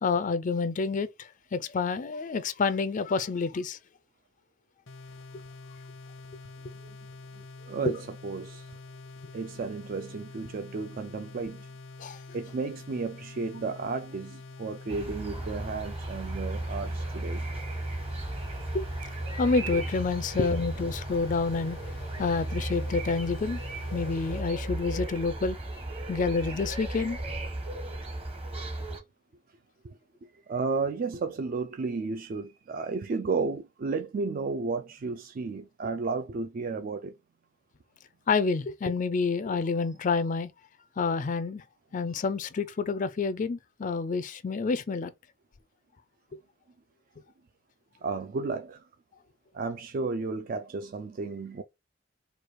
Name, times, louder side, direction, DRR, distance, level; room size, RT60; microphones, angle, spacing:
voice 1, 0.0-3.8 12.0-12.2 18.7-18.8 19.4-21.8 22.2-23.6 23.9-25.6 26.1-27.2 38.3-40.5 41.0-41.6 41.9-45.1, left 4 dB, 40° left, 0.4 m, -28 dB
sound 1, 4.9-24.5, left 3 dB, 85° left, 0.7 m, -46 dB
voice 2, 7.7-8.7 9.3-11.7 12.3-17.5 25.9-26.1 29.8-30.0 30.5-37.2 48.0-48.8 49.5-51.6, right 4 dB, 50° right, 0.4 m, -33 dB
sound 2, 14.9-29.0, right 1 dB, 30° right, 1.0 m, -35 dB
4.6 x 2.3 x 4.6 m
head